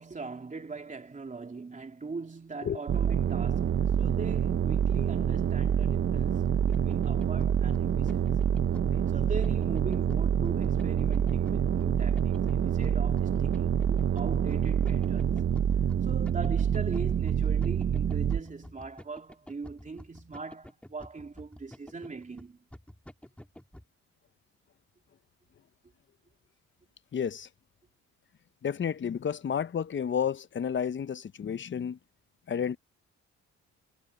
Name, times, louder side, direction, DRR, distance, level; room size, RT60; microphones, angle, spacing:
voice 1, 0.0-6.4 6.6-8.3 9.1-15.4 16.0-22.6, right 4 dB, 25° right, 3.2 m, -41 dB
sound 1, 2.9-18.4, right 8 dB, 45° right, 0.9 m, -27 dB
sound 2, 6.1-23.8, left 1 dB, 5° left, 2.9 m, -49 dB
voice 2, 27.1-27.5 28.6-32.0 32.5-32.8, left 8 dB, 40° left, 0.9 m, -31 dB
cardioid pair, 90°, 30 cm